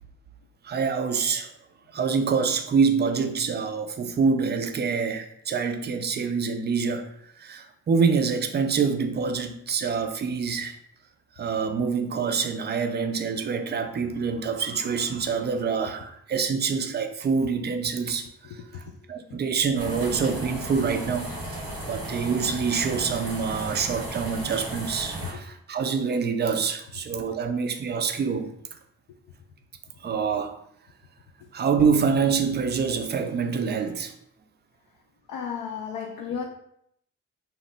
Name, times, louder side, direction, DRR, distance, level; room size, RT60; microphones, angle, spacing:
voice 1, 0.6-1.5 1.9-7.1 7.4-10.8 11.4-18.8 19.1-21.3 21.9-28.5 30.0-30.5 31.5-34.2, right 5 dB, 30° right, 0.4 m, -26 dB
voice 2, 18.5-19.0 19.3-19.4 25.3-25.4 35.3-36.4, left 7 dB, 60° left, 0.5 m, -34 dB
sound 1, 19.8-25.3, right 1 dB, 85° right, 1.4 m, -35 dB
2.8 x 2.0 x 3.3 m
hypercardioid pair, 40°, 37 cm